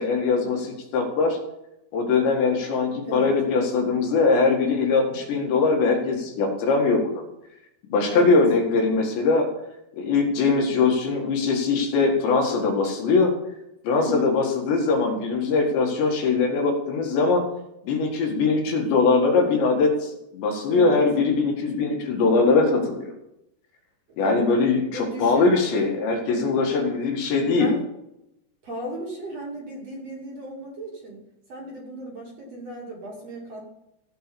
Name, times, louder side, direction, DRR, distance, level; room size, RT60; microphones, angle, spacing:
voice 1, 0.0-1.4 1.9-7.2 7.9-9.5 10.0-13.3 13.8-17.4 17.8-23.1 24.2-27.7, left 4 dB, 75° left, 1 dB, 4.2 m, -21 dB
voice 2, 8.1-8.4 13.9-14.3 20.7-21.0 24.2-24.5 24.9-25.5 27.6-27.8 28.6-31.2 31.5-33.7, right 1 dB, 40° right, -3 dB, 3.4 m, -35 dB
16.0 x 5.7 x 7.0 m, 0.86 s
omnidirectional pair, 5.1 m